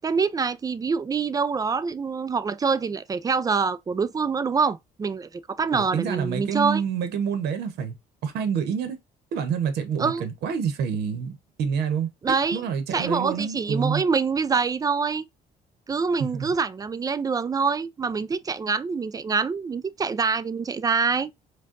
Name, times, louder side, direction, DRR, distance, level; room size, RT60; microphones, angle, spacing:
voice 1, 0.0-6.8 10.0-10.3 12.2-12.6 12.9-15.3 15.9-21.3, right 5 dB, 20° right, 0.4 m, -25 dB
voice 2, 5.7-8.0 8.2-9.0 9.3-14.0 16.2-16.5, right 7 dB, 75° right, 0.9 m, -28 dB
5.0 x 2.3 x 3.8 m
cardioid pair, 110°, 17 cm